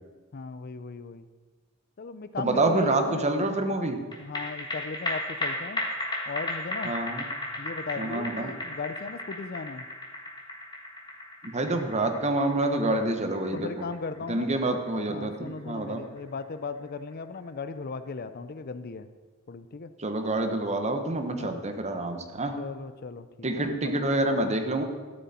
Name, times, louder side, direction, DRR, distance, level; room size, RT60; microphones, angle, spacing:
voice 1, 0.3-1.3 2.0-3.3 4.2-5.8 6.3-6.9 7.6-9.8 13.5-14.5 15.1-19.1 19.5-19.9 21.3-21.6 22.6-23.9, left 4 dB, 45° left, 12 dB, 0.5 m, -37 dB
voice 2, 2.4-4.0 6.8-7.3 8.0-8.5 11.4-13.8 14.3-16.0 20.0-22.6 23.4-24.8, right 2 dB, 35° right, 6 dB, 1.1 m, -27 dB
sound 1, 4.1-16.8 17.1-17.2, left 1 dB, 20° left, 1.6 m, -35 dB
13.0 x 11.0 x 4.3 m, 1.4 s
head